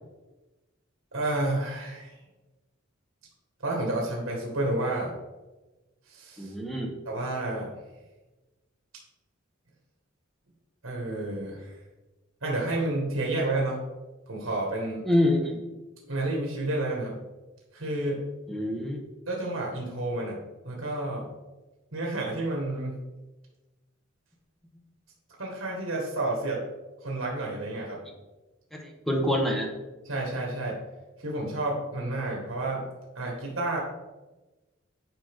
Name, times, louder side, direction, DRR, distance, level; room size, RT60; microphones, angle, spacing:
voice 1, 1.1-2.2 3.6-5.1 6.1-6.5 7.0-7.7 10.8-11.7 12.4-13.8 14.3-15.0 16.1-17.2 17.7-18.2 19.3-21.2 21.9-23.0 25.4-26.6 27.0-28.0 30.1-30.8 31.2-32.8 33.1-33.8, right 2 dB, 70° right, -2 dB, 1.7 m, -30 dB
voice 2, 6.4-6.9 15.0-15.6 18.5-19.0 28.7-29.7, left 1 dB, ahead, 0 dB, 1.1 m, -26 dB
9.1 x 5.1 x 3.6 m, 1.1 s
head